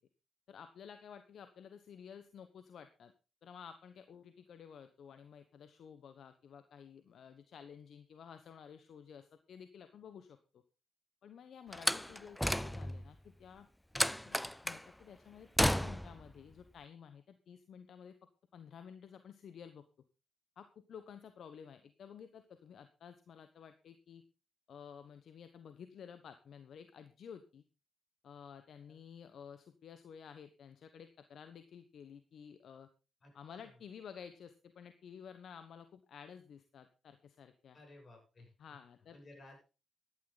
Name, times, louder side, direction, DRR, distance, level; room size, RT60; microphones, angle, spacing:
voice 1, 0.5-3.1 3.4-10.6 11.2-13.7 14.2-14.4 14.6-18.1 18.5-19.8 20.6-24.2 24.7-27.6 28.2-32.9 33.3-37.8 38.6-39.2, left 7 dB, 75° left, 10 dB, 1.1 m, -53 dB
Slam, 11.7-13.1 14.0-14.8 15.6-16.2, equal, 5° left, 0.6 m, -32 dB
voice 2, 33.2-33.8 37.7-38.8 39.1-39.6, left 2 dB, 50° left, 2 dB, 7.4 m, -57 dB
14.0 x 11.5 x 4.0 m, 0.32 s
supercardioid pair, 60°, 0 cm